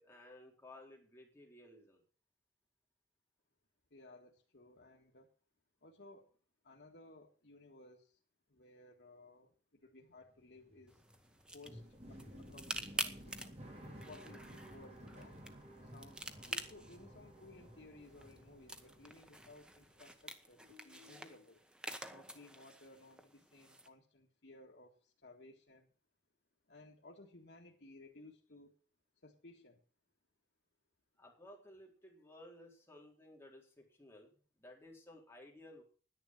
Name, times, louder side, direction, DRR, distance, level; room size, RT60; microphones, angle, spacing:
voice 1, 0.0-2.0 31.2-35.8, left 1 dB, 15° left, -1 dB, 3.8 m, -57 dB
voice 2, 3.9-5.3 5.8-6.3 6.6-8.2 8.5-11.0 11.5-13.5 14.0-15.4 15.8-16.2 16.5-21.6 22.1-25.9 26.7-28.8 29.2-29.8, left 2 dB, 70° left, -1 dB, 1.7 m, -59 dB
sound 1, 10.2-20.3 20.6-21.4, equal, 35° right, 4.1 m, -55 dB
sound 2, 10.9-23.9, right 1 dB, 5° right, 1.0 m, -48 dB
10.5 x 10.5 x 6.0 m, 0.40 s
head